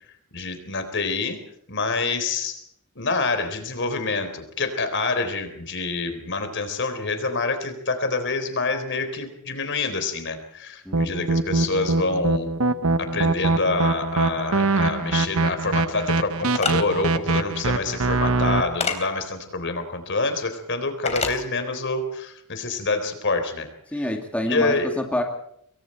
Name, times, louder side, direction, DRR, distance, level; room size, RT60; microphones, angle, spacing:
voice 1, 0.3-1.4 1.7-2.6 3.0-12.5 13.0-23.7 23.9-24.1 24.4-24.9, left 3 dB, 55° left, 8 dB, 4.0 m, -26 dB
voice 2, 10.9-11.3 23.9-25.2, left 1 dB, 5° left, 2 dB, 2.4 m, -27 dB
sound 1, 10.9-18.6, right 3 dB, 70° right, 1.1 m, -23 dB
sound 2, 16.5-16.7 18.8-19.0 21.1-21.4, left 5 dB, 30° left, 3.6 m, -25 dB
27.5 x 22.5 x 4.5 m, 0.70 s
head